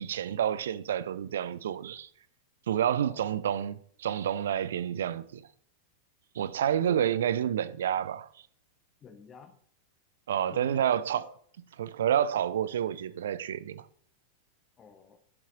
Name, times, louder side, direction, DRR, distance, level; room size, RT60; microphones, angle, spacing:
voice 1, 0.0-2.1 2.7-5.5 6.4-8.3 10.3-11.3 11.8-13.9, right 9 dB, 60° right, 0.5 m, -29 dB
voice 2, 9.0-9.6 10.5-11.3 14.8-15.2, left 6 dB, 25° left, 1.1 m, -49 dB
11.5 x 7.1 x 3.7 m
figure-of-eight pair, 90°, 0 cm